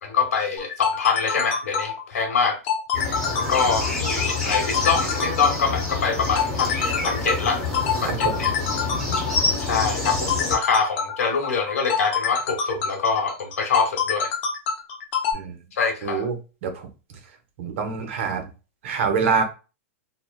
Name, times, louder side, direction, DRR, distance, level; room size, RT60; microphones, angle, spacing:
voice 1, 0.0-2.6 3.5-7.6 8.0-8.5 9.6-14.3 15.8-16.3, left 5 dB, 90° left, 1.1 m, -24 dB
sound 1, 0.6-15.3, left 7 dB, 55° left, 0.8 m, -26 dB
sound 2, 2.9-10.6, left 3 dB, 5° left, 0.8 m, -27 dB
voice 2, 8.9-9.3 15.3-15.6 16.0-16.4 16.6-16.9 17.6-18.4 18.8-19.4, right 5 dB, 60° right, 0.7 m, -26 dB
3.0 x 2.0 x 2.2 m
hypercardioid pair, 140°, 8 cm